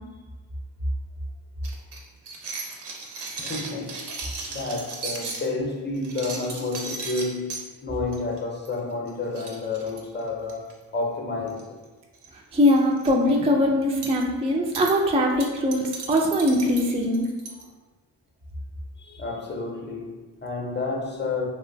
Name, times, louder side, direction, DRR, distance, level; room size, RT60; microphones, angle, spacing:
sound 1, 1.6-5.5 6.0-7.6 8.1-8.4 8.6-8.8 9.1-9.2 9.3-10.7 11.5-11.8 12.1-12.3 12.7-13.1 14.0-14.2 14.7-14.9 15.4-17.6, right 4 dB, 65° right, 0.6 m, -36 dB
voice 1, 3.4-3.9 4.5-7.6 7.8-10.7 10.9-11.8 19.0-21.4, left 3 dB, 25° left, 0.6 m, -30 dB
voice 2, 12.5-17.3, left 1 dB, 15° right, 0.3 m, -21 dB
2.8 x 2.2 x 2.6 m
cardioid pair, 45°, 43 cm